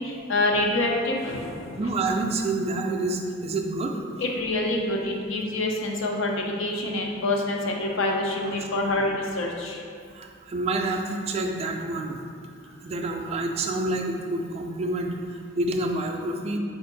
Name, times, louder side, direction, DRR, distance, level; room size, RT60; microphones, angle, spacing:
voice 1, 0.0-1.8 4.2-9.8, left 2 dB, 80° left, 0 dB, 0.6 m, -26 dB
voice 2, 1.8-4.0 8.4-8.7 10.1-12.2 12.8-16.6, right 2 dB, 30° right, 3 dB, 0.3 m, -28 dB
4.3 x 2.5 x 3.9 m, 2.2 s
head